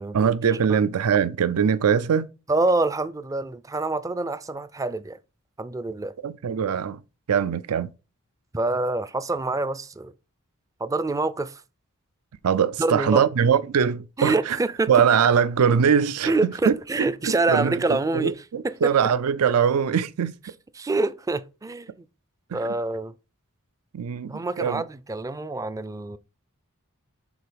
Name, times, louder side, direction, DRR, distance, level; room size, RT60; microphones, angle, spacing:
voice 1, 0.1-2.3 6.2-7.0 7.3-7.9 12.4-14.6 14.9-17.8 18.1-20.3 22.5-22.7 23.9-24.8, right 7 dB, 85° right, 0.4 m, -22 dB
voice 2, 2.5-5.2 5.6-6.1 8.5-10.1 10.8-11.6 12.8-13.2 14.2-14.9 16.3-18.4 18.6-18.9 20.8-22.0 22.5-23.1 24.3-26.2, right 2 dB, 15° right, 0.4 m, -26 dB
7.0 x 3.9 x 5.1 m
head